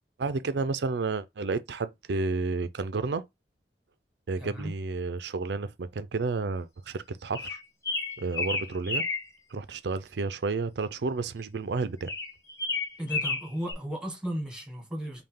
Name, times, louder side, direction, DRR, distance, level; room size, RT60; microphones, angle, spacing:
voice 1, 0.2-3.3 4.3-7.6 8.2-9.0 9.5-12.1, right 4 dB, 70° right, 0.5 m, -31 dB
voice 2, 4.4-4.7 13.0-15.2, equal, 5° right, 1.3 m, -35 dB
sound 1, 7.3-9.3 12.1-13.7, left 3 dB, 15° left, 0.8 m, -31 dB
5.4 x 2.3 x 3.5 m
head